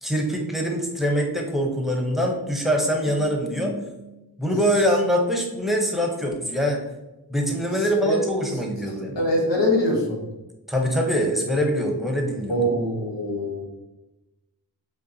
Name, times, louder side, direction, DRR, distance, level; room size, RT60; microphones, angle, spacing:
voice 1, 0.0-3.9 4.4-6.8 7.3-9.2 10.7-12.6, equal, ahead, 0 dB, 0.8 m, -24 dB
voice 2, 9.2-10.2 12.5-13.7, left 1 dB, 85° left, 0 dB, 1.0 m, -23 dB
5.1 x 2.3 x 2.7 m, 1.0 s
wide cardioid pair, 55°, 42 cm